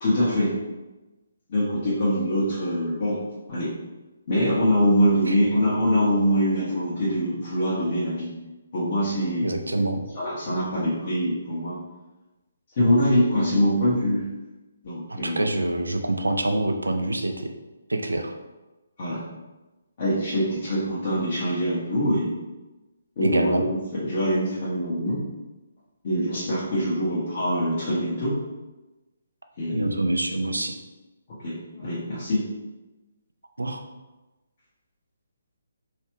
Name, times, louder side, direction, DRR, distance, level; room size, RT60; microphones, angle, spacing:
voice 1, 0.0-0.5 1.5-3.2 3.5-3.7 4.3-8.3 8.7-9.5 10.2-11.7 12.8-14.2 14.8-15.5 19.0-19.2 20.0-22.4 23.2-25.2 26.0-28.4 29.6-30.0 31.4-32.4, equal, 40° left, -11 dB, 1.3 m, -24 dB
voice 2, 9.4-10.0 15.1-17.5 17.9-18.4 23.2-23.7 29.7-30.8 33.6-33.8, right 2 dB, 75° right, 5 dB, 0.4 m, -26 dB
3.2 x 3.2 x 3.1 m, 1.1 s
figure-of-eight pair, 140°, 0 cm